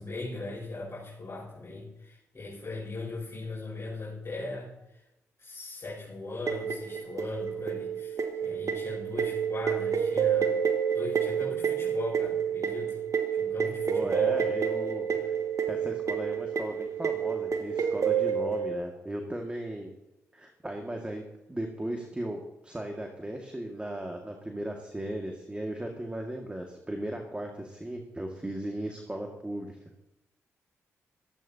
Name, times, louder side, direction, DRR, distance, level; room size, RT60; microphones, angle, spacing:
voice 1, 0.0-5.0 5.4-10.6 10.9-13.0 13.3-14.4 15.1-15.2, left 2 dB, 40° left, -7 dB, 5.3 m, -39 dB
sound 1, 6.5-18.8, right 7 dB, 50° right, 1.5 m, -29 dB
voice 2, 13.9-15.3 15.7-19.9 20.3-29.8, right 1 dB, 15° right, 2 dB, 2.1 m, -36 dB
15.5 x 14.0 x 2.9 m, 0.93 s
hypercardioid pair, 45°, 7 cm